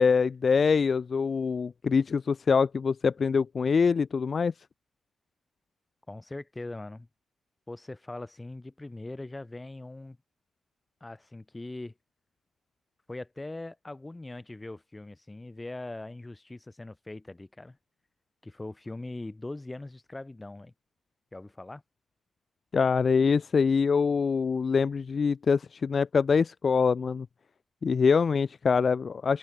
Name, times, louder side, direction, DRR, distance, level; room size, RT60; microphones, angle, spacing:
voice 1, 0.0-4.5 22.7-27.3 27.8-29.4, left 5 dB, 40° left, 0.8 m, -24 dB
voice 2, 6.1-7.1 7.7-10.2 11.0-11.9 13.1-17.8 18.4-20.7 21.3-21.8, left 2 dB, 15° left, 3.4 m, -41 dB
wide cardioid pair, 145°, 0 cm